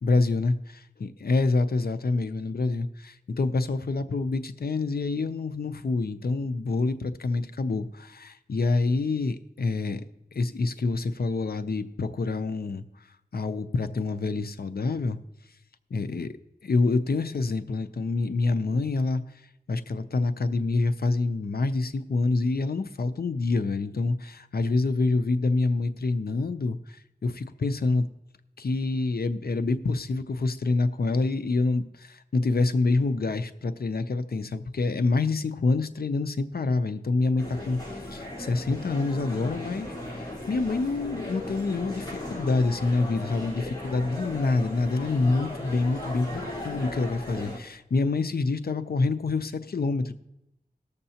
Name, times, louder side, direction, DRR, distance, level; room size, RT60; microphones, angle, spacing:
voice 1, 0.0-10.0 10.3-13.1 13.3-15.2 15.9-16.3 16.6-19.2 19.7-28.1 28.6-50.1, left 3 dB, 70° left, 10 dB, 0.6 m, -27 dB
sound 1, 37.4-47.6, left 1 dB, 25° left, 3.9 m, -37 dB
19.0 x 6.7 x 2.8 m, 0.85 s
wide cardioid pair, 65°, 16 cm